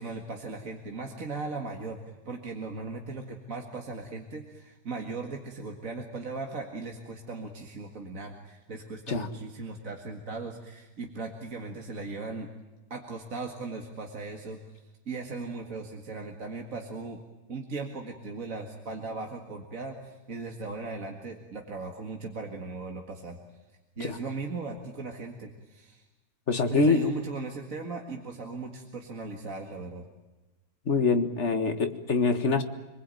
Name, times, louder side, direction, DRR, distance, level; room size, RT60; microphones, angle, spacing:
voice 1, 0.0-2.0 2.3-12.5 12.9-17.2 17.5-23.4 24.0-26.0 26.7-30.0, right 3 dB, 40° right, 2 dB, 2.2 m, -38 dB
voice 2, 26.5-27.0 30.9-32.6, left 4 dB, 35° left, 7 dB, 1.8 m, -25 dB
27.5 x 20.5 x 9.1 m, 1.1 s
omnidirectional pair, 2.2 m